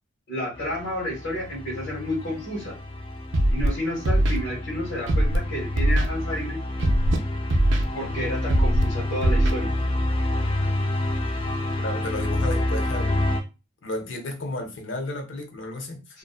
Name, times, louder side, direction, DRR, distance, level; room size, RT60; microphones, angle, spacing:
voice 1, 0.3-2.8 3.5-6.6 7.9-9.7 16.1-16.2, equal, 90° left, 1.1 m, -31 dB
sound 1, 0.5-13.4, left 1 dB, 25° left, 0.3 m, -28 dB
Scratching (performance technique), 3.3-3.7 4.0-4.4 5.1-5.4 5.8-6.1 6.8-7.2 7.5-7.8 8.5-8.8 9.2-9.5, right 1 dB, 70° right, 0.4 m, -20 dB
voice 2, 11.8-13.3 13.8-16.2, left 1 dB, 70° left, 0.7 m, -33 dB
2.6 x 2.2 x 2.3 m
head